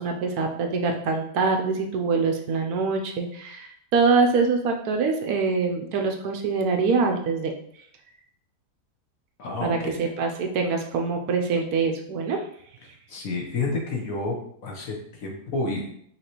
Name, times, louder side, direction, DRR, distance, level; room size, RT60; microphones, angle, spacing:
voice 1, 0.0-7.5 9.6-12.4, right 4 dB, 75° right, 3 dB, 1.0 m, -24 dB
voice 2, 9.4-10.0 13.1-15.9, left 3 dB, 60° left, 0 dB, 1.2 m, -30 dB
5.7 x 3.0 x 2.9 m, 0.67 s
omnidirectional pair, 1.8 m